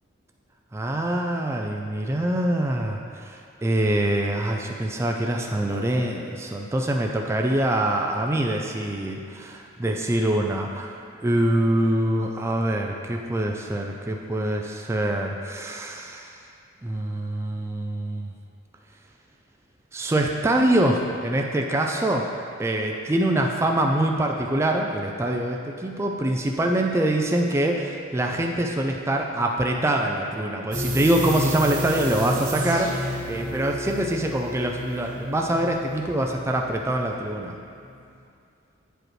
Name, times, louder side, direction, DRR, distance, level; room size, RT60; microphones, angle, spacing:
voice 1, 0.7-11.0 11.2-16.3 16.8-18.3 19.9-22.3 22.6-37.6, right 1 dB, 15° right, 1 dB, 0.3 m, -24 dB
sound 1, 30.7-37.5 37.8-37.9, left 1 dB, 40° right, 0.8 m, -32 dB
8.9 x 4.9 x 3.1 m, 2.4 s
head